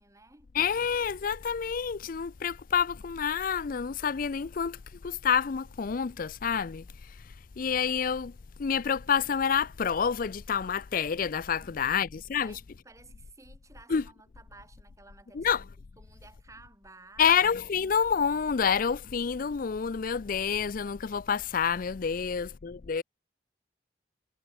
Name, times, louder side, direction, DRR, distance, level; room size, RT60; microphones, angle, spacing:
voice 1, 0.0-0.5 11.6-12.0 12.4-15.5 16.0-17.3 17.7-17.8 22.1-22.2, right 3 dB, 15° right, 2.9 m, -54 dB
voice 2, 0.5-12.6 13.9-14.0 15.3-15.6 17.2-23.0, left 7 dB, 50° left, 0.5 m, -28 dB
head